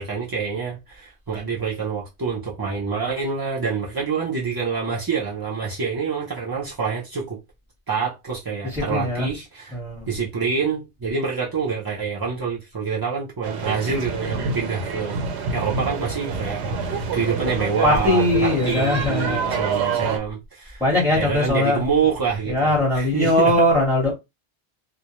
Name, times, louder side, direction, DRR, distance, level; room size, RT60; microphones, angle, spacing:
voice 1, 0.0-7.4 7.9-9.8 10.1-15.2 15.5-20.8 21.1-23.5, right 5 dB, 35° right, 0.3 m, -26 dB
voice 2, 8.7-9.3 9.7-10.1 17.8-19.6 20.8-21.8 22.5-24.1, left 1 dB, ahead, 0.7 m, -20 dB
sound 1, 13.4-20.2, right 5 dB, 75° right, 0.8 m, -27 dB
2.4 x 2.1 x 2.8 m
omnidirectional pair, 1.2 m